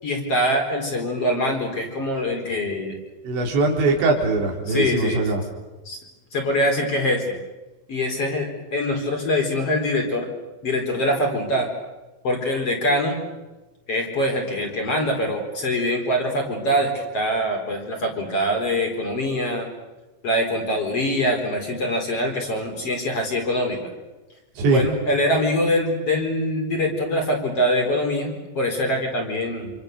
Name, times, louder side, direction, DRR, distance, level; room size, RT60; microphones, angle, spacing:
voice 1, 0.0-3.0 4.7-5.3 5.8-6.0 6.3-7.4 7.9-10.3 10.6-11.7 12.2-13.2 13.9-19.7 20.2-23.9 24.7-29.7, left 1 dB, 35° left, 2 dB, 5.0 m, -23 dB
voice 2, 3.3-5.4 24.6-24.9, right 3 dB, 75° right, 0 dB, 6.8 m, -21 dB
28.0 x 28.0 x 6.9 m, 1.1 s
omnidirectional pair, 5.2 m